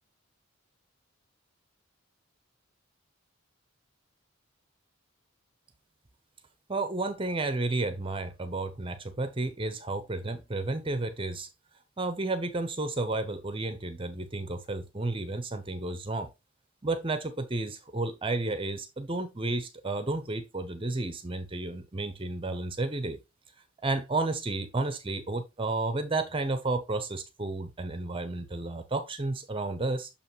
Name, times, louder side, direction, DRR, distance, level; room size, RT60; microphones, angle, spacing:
voice 1, 6.7-11.5 12.0-16.3 16.8-23.2 23.8-30.1, right 2 dB, 25° right, 0.8 m, -32 dB
6.9 x 5.6 x 3.1 m
head